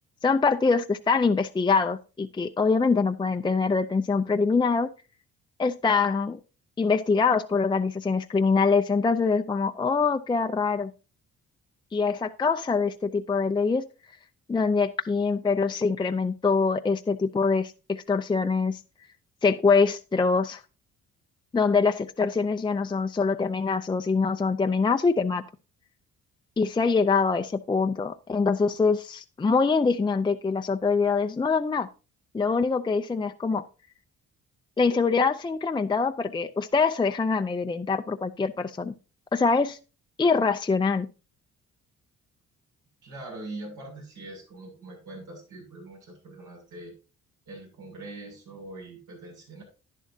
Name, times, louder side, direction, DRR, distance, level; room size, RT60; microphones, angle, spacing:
voice 1, 0.2-4.9 5.6-6.4 6.8-10.9 11.9-13.8 14.5-18.8 19.4-20.6 21.5-25.4 26.6-31.9 32.3-33.6 34.8-38.9 39.3-39.8 40.2-41.1, left 4 dB, 15° left, 7 dB, 0.5 m, -24 dB
voice 2, 43.0-46.9 47.5-49.6, right 2 dB, 80° right, 0 dB, 6.8 m, -42 dB
11.0 x 10.0 x 2.7 m, 0.32 s
cardioid pair, 90°, 30 cm